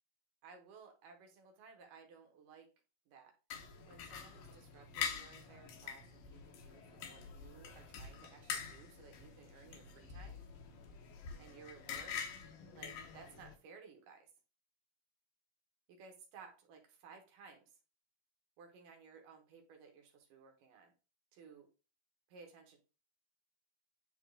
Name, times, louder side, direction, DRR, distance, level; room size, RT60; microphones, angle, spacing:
voice 1, 0.4-2.7 3.1-3.3 3.9-10.4 11.4-12.2 12.7-14.3 15.9-17.7 18.6-20.9 21.3-21.7 22.3-22.8, right 5 dB, 65° right, 3 dB, 2.3 m, -58 dB
sound 1, 3.5-13.5, left 7 dB, 65° left, 2.6 m, -46 dB
10.0 x 3.6 x 3.8 m, 0.33 s
omnidirectional pair, 4.9 m